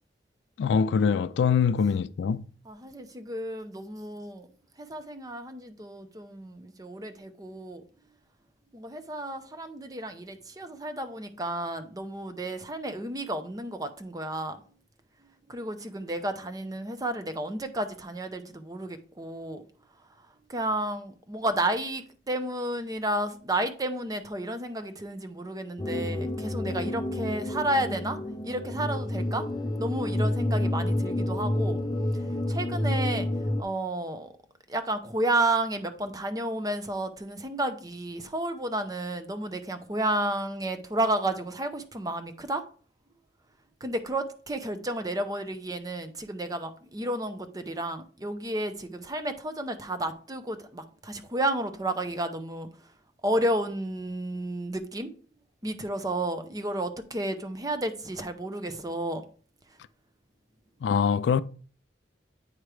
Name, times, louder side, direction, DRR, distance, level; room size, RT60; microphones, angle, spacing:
voice 1, 0.6-2.5 60.8-61.4, left 6 dB, 70° left, 0.3 m, -23 dB
voice 2, 2.7-4.5 4.8-7.8 8.7-14.6 15.5-19.6 20.5-28.2 28.4-29.5 29.8-31.8 32.1-33.3 33.6-34.3 34.7-42.6 43.8-52.9 53.2-55.1 55.6-59.2, right 1 dB, 20° right, 0.6 m, -32 dB
sound 1, 25.8-33.6, left 1 dB, 20° left, 0.5 m, -29 dB
8.8 x 3.2 x 4.8 m
head